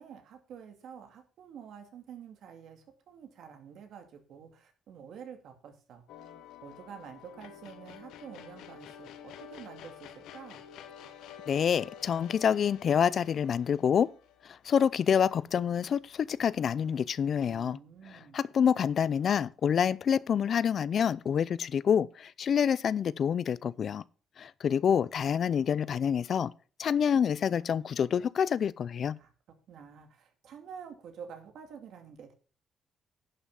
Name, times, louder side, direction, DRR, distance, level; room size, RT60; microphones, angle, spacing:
voice 1, 0.0-6.0 6.6-10.6 17.4-18.4 29.2-29.3 29.7-32.3, right 7 dB, 75° right, 2.4 m, -48 dB
sound 1, 6.1-15.3, left 9 dB, 90° left, 1.2 m, -50 dB
voice 2, 11.5-14.1 14.6-17.8 18.1-24.0 24.4-26.5 26.8-29.2, left 7 dB, 55° left, 0.5 m, -27 dB
11.0 x 5.8 x 5.5 m
cardioid pair, 90°, 0 cm